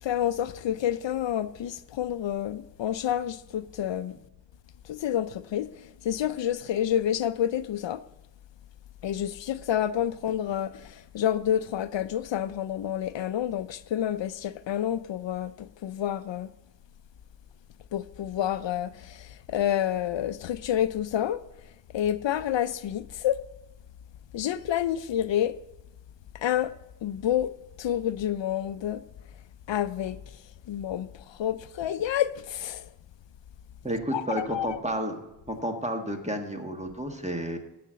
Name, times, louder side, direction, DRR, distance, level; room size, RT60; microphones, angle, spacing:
voice 1, 0.0-4.2 4.8-5.7 6.0-8.0 9.0-16.5 17.9-21.4 21.9-23.4 24.3-25.6 26.3-26.7 27.0-27.5 27.8-29.0 29.7-30.2 30.7-32.9 34.1-34.8, left 10 dB, 75° left, 0.5 m, -29 dB
voice 2, 33.8-37.6, right 1 dB, 15° right, 1.4 m, -31 dB
12.5 x 4.2 x 7.5 m
wide cardioid pair, 80°, 44 cm